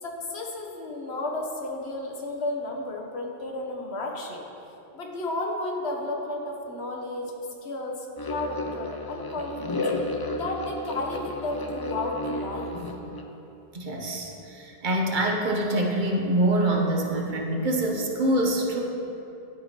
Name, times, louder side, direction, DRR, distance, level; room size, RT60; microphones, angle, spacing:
voice 1, 0.0-4.4 4.9-7.3 7.6-9.9 10.3-12.8, left 2 dB, 80° left, 1 dB, 1.3 m, -33 dB
sound 1, 8.2-13.2, left 2 dB, 30° left, 0.4 m, -32 dB
voice 2, 13.7-18.8, right 1 dB, 50° right, 1 dB, 0.9 m, -25 dB
11.5 x 4.3 x 4.4 m, 3.0 s
omnidirectional pair, 1.1 m